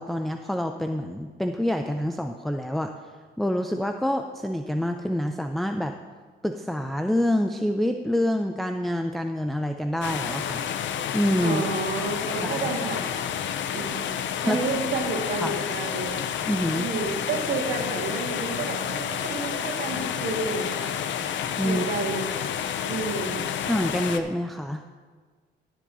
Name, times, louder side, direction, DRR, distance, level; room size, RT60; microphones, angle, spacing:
voice 1, 0.0-2.9 3.4-5.9 6.4-10.6 11.1-11.6 12.4-12.7 14.5-14.6 15.4-15.5 16.5-16.9 21.6-21.9 23.6-24.8, left 1 dB, ahead, 4 dB, 0.4 m, -26 dB
sound 1, 10.0-24.2, left 8 dB, 70° left, 0.6 m, -30 dB
voice 2, 11.4-13.0 13.7-14.0 14.4-16.2 16.7-20.9 21.6-22.3 22.8-23.4, right 3 dB, 75° right, 1 dB, 1.9 m, -30 dB
18.5 x 7.5 x 2.7 m, 1.5 s
cardioid pair, 90°, 20 cm